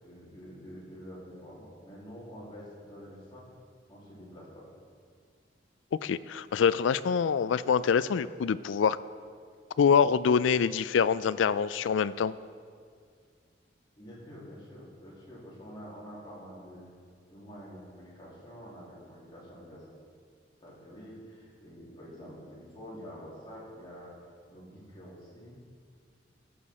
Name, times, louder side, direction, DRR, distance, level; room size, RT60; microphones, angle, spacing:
voice 1, 0.0-3.5 3.9-4.7 13.9-16.9 17.3-19.9 20.6-24.2 24.5-25.6, equal, 25° left, -6 dB, 2.8 m, -47 dB
voice 2, 6.0-9.0 9.8-12.4, left 6 dB, 90° left, 16 dB, 0.4 m, -25 dB
16.0 x 7.2 x 4.3 m, 2.1 s
head